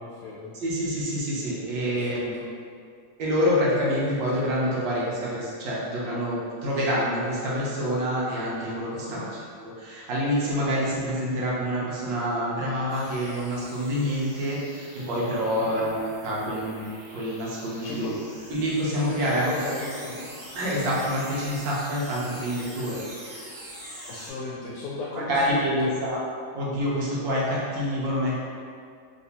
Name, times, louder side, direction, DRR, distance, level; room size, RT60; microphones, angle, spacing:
voice 1, 0.0-0.5 1.9-2.4 8.9-9.2 15.6-15.8 17.8-18.2 19.2-20.2 24.0-25.9, left 3 dB, 75° left, -6 dB, 1.2 m, -36 dB
voice 2, 0.5-2.3 3.2-9.3 9.8-18.1 18.5-19.7 20.5-23.4 25.1-26.2 26.5-28.3, equal, 85° right, -6 dB, 1.5 m, -27 dB
sound 1, 12.9-24.3, right 1 dB, 60° right, 1.4 m, -44 dB
3.2 x 2.9 x 2.7 m, 2.3 s
omnidirectional pair, 1.9 m